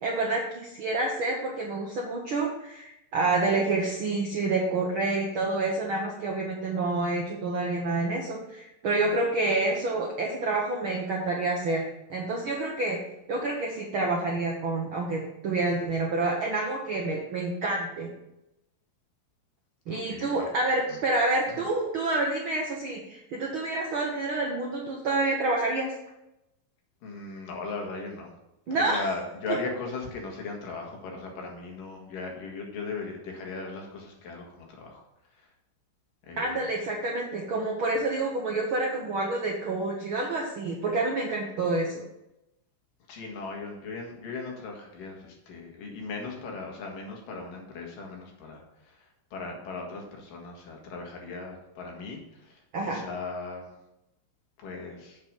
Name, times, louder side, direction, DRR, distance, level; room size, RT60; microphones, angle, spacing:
voice 1, 0.0-11.8 12.1-13.0 13.3-18.1 19.9-25.9 28.7-29.0 36.4-42.0 52.7-53.0, right 2 dB, 70° right, -1 dB, 1.2 m, -28 dB
voice 2, 19.9-20.5 20.9-21.0 21.5-21.6 27.0-28.3 28.8-35.0 35.3-35.5 36.2-36.7 43.1-53.7 54.6-55.2, left 3 dB, 80° left, 0 dB, 3.4 m, -38 dB
7.7 x 6.9 x 5.2 m, 0.89 s
omnidirectional pair, 3.8 m